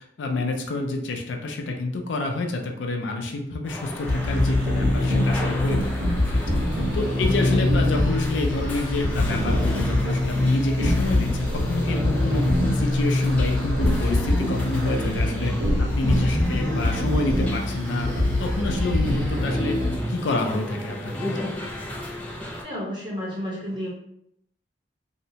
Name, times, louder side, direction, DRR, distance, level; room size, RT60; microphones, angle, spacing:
voice 1, 0.2-6.1 6.5-6.6 6.9-12.4 12.7-15.5 15.8-19.8 20.1-21.5, left 2 dB, 80° left, 3 dB, 0.4 m, -28 dB
sound 1, 3.6-22.6, equal, 5° left, 0.3 m, -34 dB
sound 2, 4.0-20.0, left 1 dB, 90° right, 1.0 m, -23 dB
voice 2, 6.5-7.3 22.6-23.9, equal, 25° right, -6 dB, 1.0 m, -32 dB
2.7 x 2.1 x 2.7 m, 0.73 s
head